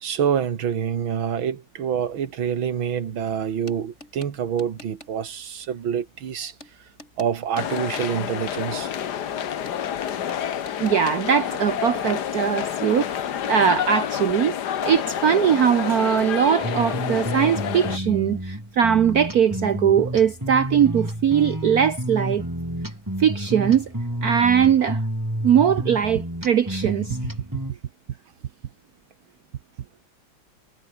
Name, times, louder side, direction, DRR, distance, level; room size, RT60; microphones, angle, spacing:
voice 1, 0.0-6.5 7.2-8.9, right 8 dB, 80° right, 2.5 m, -26 dB
sound 1, 2.0-13.5, left 1 dB, 35° left, 8.5 m, -51 dB
sound 2, 7.6-18.0, left 9 dB, 60° left, 1.6 m, -28 dB
voice 2, 10.8-14.6 14.8-22.4 23.2-23.9 24.2-25.0 25.4-27.2, right 8 dB, 55° right, 1.3 m, -20 dB
sound 3, 16.6-27.7, right 1 dB, 10° right, 5.2 m, -30 dB
omnidirectional pair, 2.2 m